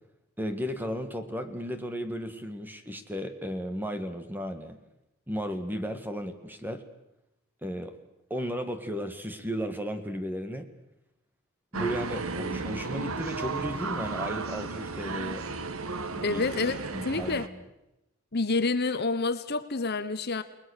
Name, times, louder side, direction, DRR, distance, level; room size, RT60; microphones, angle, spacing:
voice 1, 0.4-4.8 5.3-6.8 7.6-7.9 8.3-10.7 11.7-15.5 16.1-16.4 16.9-17.6, equal, 10° right, 8 dB, 1.9 m, -34 dB
sound 1, 11.7-17.5, right 3 dB, 80° right, 1.4 m, -34 dB
voice 2, 16.2-16.8 17.0-17.5 18.3-20.4, left 3 dB, 50° left, 11 dB, 1.1 m, -28 dB
29.5 x 20.5 x 6.6 m, 0.90 s
head